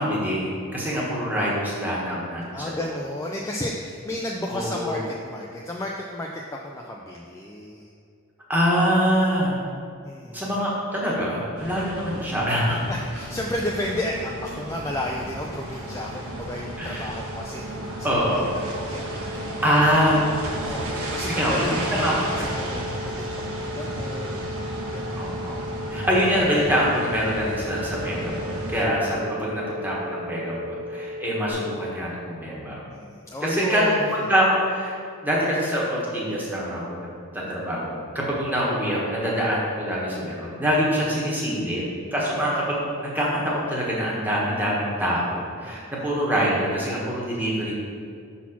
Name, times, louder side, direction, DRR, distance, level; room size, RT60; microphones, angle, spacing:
voice 1, 0.0-2.8 4.5-5.0 8.5-9.6 10.3-12.8 16.8-17.1 18.0-18.6 19.6-20.3 21.2-22.3 22.6-22.7 25.2-25.6 25.9-32.8 33.4-37.1 37.3-41.8 42.1-47.8, equal, 10° right, -5 dB, 1.2 m, -25 dB
voice 2, 2.5-7.9 10.0-10.5 12.9-19.6 20.6-24.4 24.9-25.3 32.9-34.0 41.2-41.7 45.6-45.8, left 1 dB, 15° left, -1 dB, 0.3 m, -33 dB
sound 1, 11.6-28.8, right 1 dB, 85° right, 1.3 m, -33 dB
sound 2, 14.6-31.5, left 1 dB, 90° left, 1.5 m, -37 dB
5.8 x 4.2 x 5.8 m, 2.4 s
head